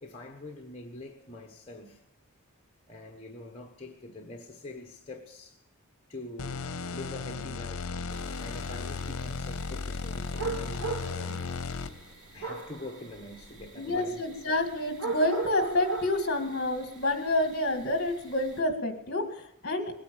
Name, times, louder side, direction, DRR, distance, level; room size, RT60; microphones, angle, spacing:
voice 1, 0.0-2.0 2.9-5.6 6.1-11.5 12.3-14.2, left 2 dB, 25° left, 1.2 m, -44 dB
sound 1, 6.4-12.1, left 4 dB, 80° left, 0.7 m, -35 dB
sound 2, 8.1-18.6, right 4 dB, 90° right, 2.5 m, -40 dB
voice 2, 13.8-19.9, left 1 dB, 45° left, 2.1 m, -28 dB
20.5 x 9.4 x 6.9 m
head